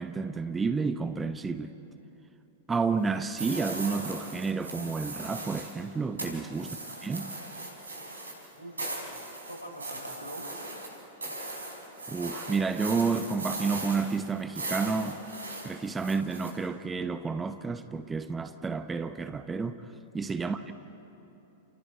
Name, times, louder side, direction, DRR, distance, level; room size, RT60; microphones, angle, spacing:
voice 1, 0.0-1.7 2.7-7.3 12.1-15.2 15.6-19.8 20.1-20.7, right 4 dB, 15° right, 0.9 m, -30 dB
sound 1, 3.4-5.8 6.2-16.5, right 2 dB, 75° right, 4.6 m, -38 dB
voice 2, 8.5-9.1 9.5-10.5 20.4-20.7, equal, 85° left, 4.3 m, -44 dB
30.0 x 29.0 x 4.5 m
figure-of-eight pair, 100°, 0 cm